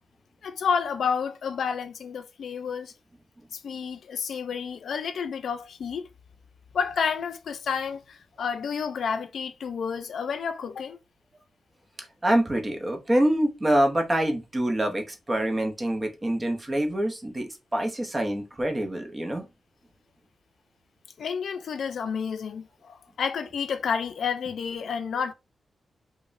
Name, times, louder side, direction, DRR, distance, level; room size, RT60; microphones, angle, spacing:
voice 1, 0.4-2.9 3.5-6.1 6.7-11.0 21.2-25.3, left 6 dB, 70° left, 0.4 m, -30 dB
voice 2, 12.0-19.5, right 1 dB, 20° right, 0.7 m, -26 dB
5.0 x 2.1 x 2.5 m
wide cardioid pair, 175°, 0 cm